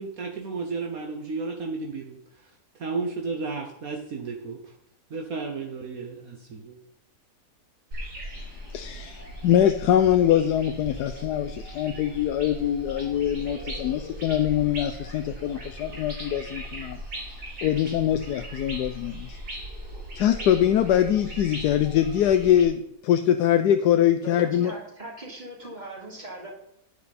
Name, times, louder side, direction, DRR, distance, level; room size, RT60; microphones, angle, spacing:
voice 1, 0.0-2.2 2.8-4.6 5.1-6.8, right 4 dB, 60° right, 1 dB, 1.5 m, -33 dB
sound 1, 7.9-22.6, right 1 dB, 90° right, 4.3 m, -38 dB
voice 2, 8.7-17.0 17.3-17.4 17.6-19.4 20.1-24.7, left 10 dB, 85° left, 8 dB, 1.2 m, -23 dB
voice 3, 24.2-26.5, right 1 dB, 25° right, -3 dB, 3.4 m, -40 dB
10.0 x 9.5 x 4.2 m, 0.77 s
omnidirectional pair, 1.7 m